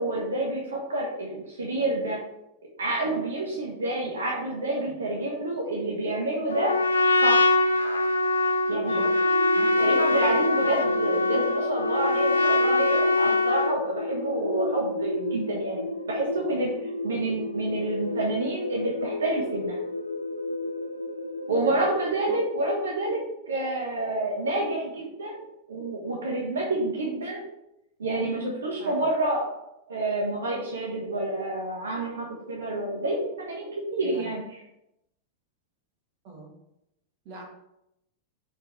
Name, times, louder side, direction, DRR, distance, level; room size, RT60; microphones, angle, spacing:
voice 1, 0.0-2.2 2.8-6.8 7.2-7.6 8.7-9.0 9.8-16.7 17.0-19.8 21.5-27.4 28.0-29.6 29.9-34.6, right 2 dB, 70° right, -2 dB, 1.3 m, -28 dB
Trumpet, 6.5-13.8, left 2 dB, 75° left, 0.6 m, -23 dB
sound 1, 8.7-22.4, left 1 dB, 90° right, 0.4 m, -33 dB
voice 2, 9.5-10.1 21.7-21.8 22.3-22.4 28.8-29.1 34.0-34.3 36.2-36.5 37.2-37.5, right 3 dB, 45° right, 1 dB, 1.7 m, -42 dB
5.0 x 4.4 x 4.5 m, 0.83 s
figure-of-eight pair, 90°, 0 cm